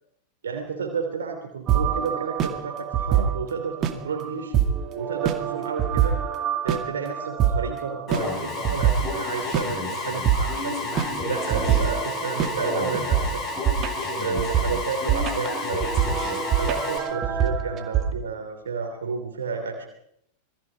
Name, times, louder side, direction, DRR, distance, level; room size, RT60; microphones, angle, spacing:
voice 1, 0.4-4.5 4.9-6.2 6.6-13.4 14.2-16.1 16.6-19.8, right 5 dB, 65° right, 4 dB, 3.0 m, -31 dB
sound 1, 1.7-9.0 9.5-9.6 10.2-10.4 10.9-18.1, right 9 dB, 30° right, 2.3 m, -25 dB
Alarm, 8.1-17.0, left 2 dB, 30° left, 7.7 m, -30 dB
26.5 x 20.5 x 5.1 m, 0.75 s
figure-of-eight pair, 90°, 0 cm